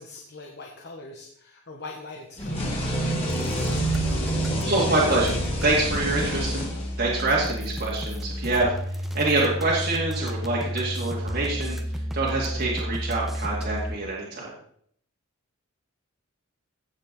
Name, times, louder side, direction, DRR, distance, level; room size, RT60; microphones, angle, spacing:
voice 1, 0.0-3.2, left 3 dB, 55° left, 1 dB, 1.4 m, -42 dB
sound 1, 2.4-7.3, right 1 dB, 30° left, 3.7 m, -28 dB
sound 2, 3.3-13.9, equal, ahead, 0.9 m, -32 dB
voice 2, 4.7-6.7 7.0-14.5, right 2 dB, 50° right, -5 dB, 2.2 m, -26 dB
16.0 x 7.4 x 4.0 m, 0.65 s
head